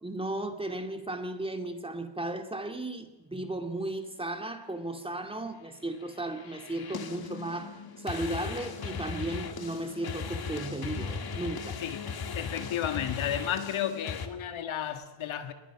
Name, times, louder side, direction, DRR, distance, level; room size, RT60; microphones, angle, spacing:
voice 1, 0.0-11.8, right 1 dB, 10° right, 2.4 m, -35 dB
sound 1, 5.9-14.3, left 5 dB, 50° left, 2.3 m, -38 dB
voice 2, 11.8-15.5, left 10 dB, 85° left, 2.2 m, -33 dB
28.5 x 21.0 x 6.1 m
cardioid pair, 125°, 47 cm